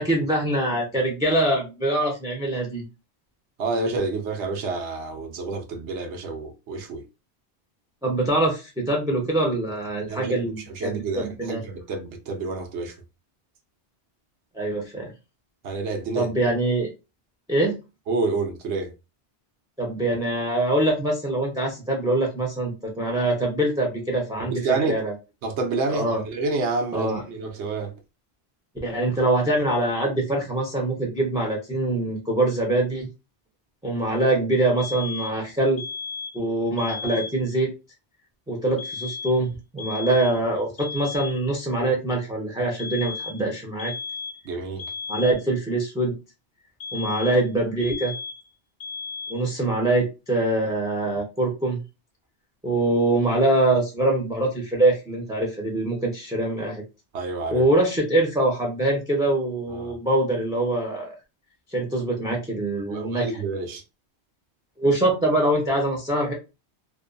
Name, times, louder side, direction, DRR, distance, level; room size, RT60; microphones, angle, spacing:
voice 1, 0.0-2.9 8.0-11.6 14.5-15.1 16.1-16.9 17.5-17.8 19.8-25.1 25.9-26.2 26.9-27.2 28.8-33.1 33.8-35.8 36.3-37.7 38.5-43.9 45.1-46.1 46.9-48.1 49.3-51.8 52.6-56.8 57.5-61.1 61.7-63.3 64.8-66.3, right 2 dB, 5° right, 0.4 m, -24 dB
voice 2, 3.6-7.0 10.1-13.0 15.6-16.3 18.1-18.9 24.4-25.0 25.4-27.9 44.4-44.8 57.1-57.7 59.7-59.9 62.9-63.8, right 3 dB, 85° right, 1.0 m, -29 dB
sound 1, 34.8-35.4 35.8-36.4 36.8-37.4 38.8-39.5 39.8-40.5 40.8-41.5 42.8-43.5 43.8-44.5 44.8-45.5 46.8-47.5 47.8-48.5 48.8-49.5, left 5 dB, 60° left, 0.6 m, -35 dB
2.6 x 2.2 x 2.4 m
omnidirectional pair, 1.1 m